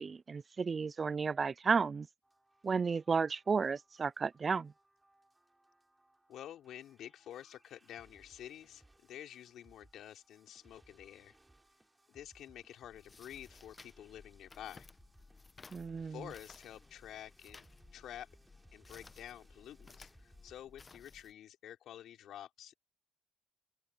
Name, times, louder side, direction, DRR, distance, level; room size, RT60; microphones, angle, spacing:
voice 1, 0.0-2.1 2.6-4.7 15.7-16.2, right 5 dB, 35° right, 0.3 m, -33 dB
sound 1, 2.2-20.6, right 1 dB, 10° right, 5.1 m, -67 dB
voice 2, 6.3-11.4 12.1-14.9 16.0-17.7 17.9-18.3 18.7-22.7, left 11 dB, 75° left, 4.0 m, -50 dB
sound 2, 12.9-21.3, left 4 dB, 30° left, 0.9 m, -58 dB
open air
cardioid pair, 90°, 0 cm